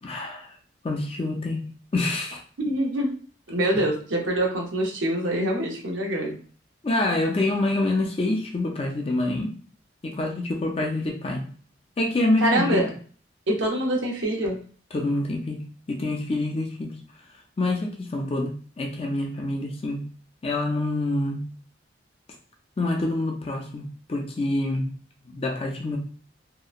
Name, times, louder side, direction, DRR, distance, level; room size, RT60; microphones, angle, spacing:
voice 1, 0.0-0.5 0.8-1.6 1.9-2.4 3.7-3.8 6.8-9.6 10.0-11.4 12.0-12.9 14.9-15.6 15.9-17.0 17.6-20.0 20.4-21.4 22.8-24.9 25.2-26.0, left 2 dB, 30° left, 1 dB, 0.4 m, -26 dB
voice 2, 2.6-3.1 3.5-6.3 12.4-12.9 13.5-14.6, right 1 dB, 90° right, 0 dB, 0.7 m, -25 dB
2.7 x 2.1 x 2.4 m, 0.43 s
head